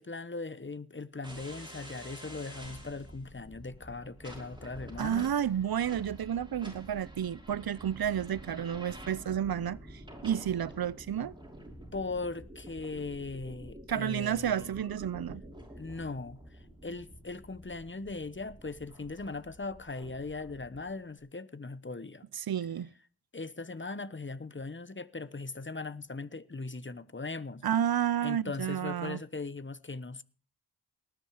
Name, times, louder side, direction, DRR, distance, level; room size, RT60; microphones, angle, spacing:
voice 1, 0.0-5.3 11.9-14.7 15.8-22.2 23.3-27.7 28.2-30.2, left 3 dB, 30° left, 1.1 m, -39 dB
sound 1, 1.2-20.9, right 1 dB, 10° right, 6.4 m, -49 dB
voice 2, 5.0-11.3 13.9-15.4 22.4-22.9 27.6-29.2, right 9 dB, 70° right, 0.6 m, -31 dB
19.0 x 10.5 x 4.9 m
wide cardioid pair, 65°, 38 cm